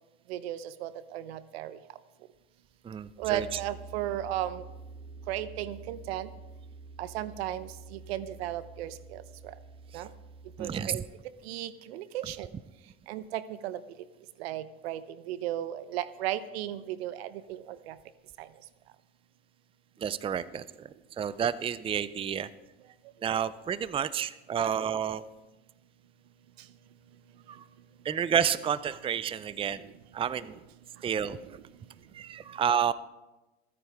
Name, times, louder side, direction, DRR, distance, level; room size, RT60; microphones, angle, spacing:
voice 1, 0.3-1.8 3.2-4.6 5.3-6.3 7.0-9.2 9.9-10.1 10.6-11.0 11.5-12.5 13.1-13.8 14.4-15.0 15.3-17.9 18.4-18.5, right 12 dB, 75° right, 15 dB, 0.9 m, -35 dB
voice 2, 2.8-3.6 10.6-11.0 20.0-20.9 21.2-22.5 23.2-25.2 27.5-27.6 28.0-29.9 30.1-30.6 31.0-31.4 32.1-32.9, right 8 dB, 20° right, 16 dB, 0.5 m, -30 dB
sound 1, 3.2-10.9, right 4 dB, 35° right, 1.2 m, -48 dB
25.0 x 9.6 x 3.5 m, 1.1 s
hypercardioid pair, 85°, 31 cm